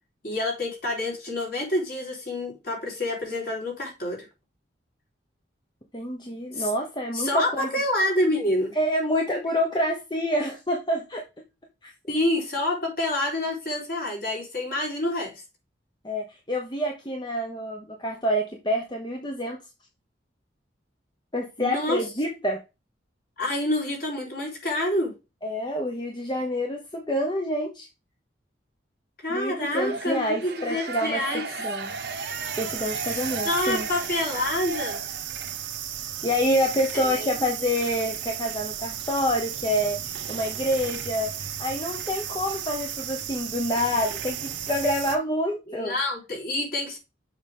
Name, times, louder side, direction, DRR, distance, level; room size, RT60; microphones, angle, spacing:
voice 1, 0.2-4.3 6.5-6.7 7.1-8.7 12.1-15.4 21.6-22.0 23.4-25.1 29.2-31.4 33.0-35.0 36.9-37.5 45.7-47.0, left 1 dB, 50° left, 4.0 m, -27 dB
voice 2, 5.9-7.7 8.8-11.2 11.8-11.9 16.0-19.6 21.3-22.6 25.4-27.9 29.3-31.2 31.6-31.9 32.5-33.8 36.2-46.0, equal, 25° left, 1.1 m, -27 dB
sound 1, 29.7-35.6, right 4 dB, 60° right, 1.1 m, -36 dB
sound 2, 31.8-45.2, right 10 dB, 85° right, 1.1 m, -34 dB
7.1 x 5.2 x 3.6 m
head